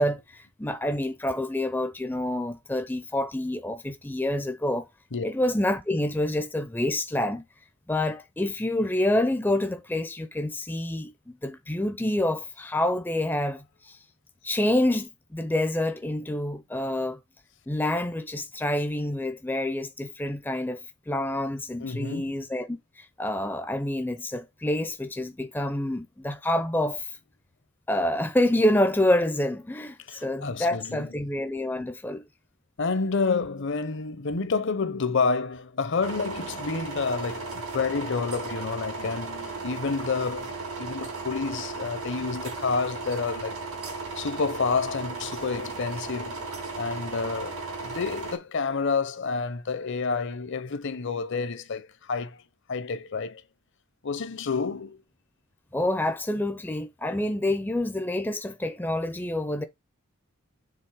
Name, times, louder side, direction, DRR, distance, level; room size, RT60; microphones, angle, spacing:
voice 1, 0.0-4.9 5.2-7.4 7.9-14.0 14.4-17.2 17.7-20.8 21.1-27.2 27.9-32.2 55.7-59.6, left 1 dB, 10° left, 0.5 m, -27 dB
voice 2, 21.8-22.5 30.1-31.1 32.8-43.6 44.2-46.4 46.8-52.4 52.7-53.4 54.0-55.0, left 4 dB, 55° left, 0.7 m, -29 dB
sound 1, 36.0-48.4, right 3 dB, 90° right, 3.9 m, -36 dB
6.9 x 3.7 x 4.9 m
head